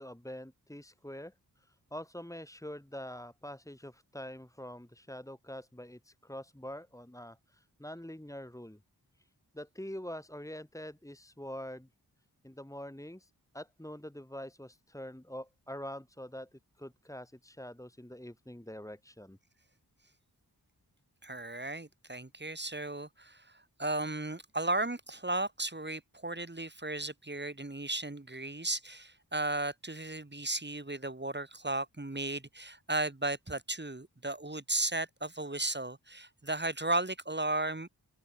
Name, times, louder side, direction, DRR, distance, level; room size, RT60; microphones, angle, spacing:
voice 1, 0.0-8.8 9.5-11.9 12.4-19.4, equal, 10° left, 4.2 m, -45 dB
voice 2, 21.2-23.5 23.8-37.9, right 2 dB, 25° right, 7.7 m, -35 dB
open air
wide cardioid pair, 85°, 39 cm